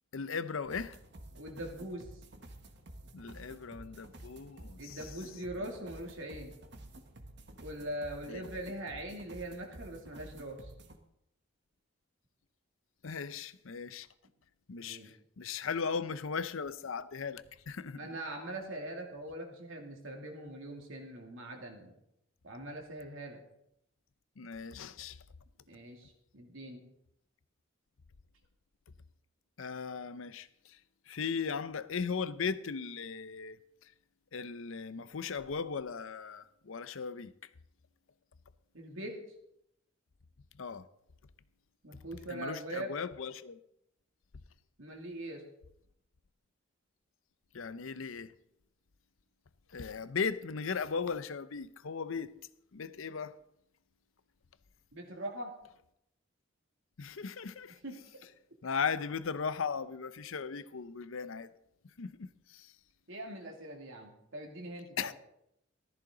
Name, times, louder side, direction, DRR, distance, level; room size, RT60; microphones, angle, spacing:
voice 1, 0.1-1.0 3.1-5.1 5.6-5.7 8.3-8.4 13.0-14.1 14.7-18.2 24.4-25.2 29.6-30.8 31.1-33.6 34.3-37.3 40.6-40.9 42.3-43.6 47.5-48.3 49.7-52.3 52.7-53.4 57.0-57.8 58.6-61.5 62.0-62.7 65.0-65.1, left 5 dB, 75° left, 0.6 m, -37 dB
sound 1, 0.6-11.0, right 1 dB, 55° right, 1.4 m, -51 dB
voice 2, 1.4-2.0 4.8-6.6 7.6-10.7 14.8-15.1 17.9-21.9 22.4-23.4 25.7-26.8 38.7-39.1 41.8-42.9 44.8-45.4 54.9-55.5 57.8-57.9 63.1-65.1, right 1 dB, 70° right, 2.7 m, -42 dB
15.0 x 13.5 x 3.9 m
head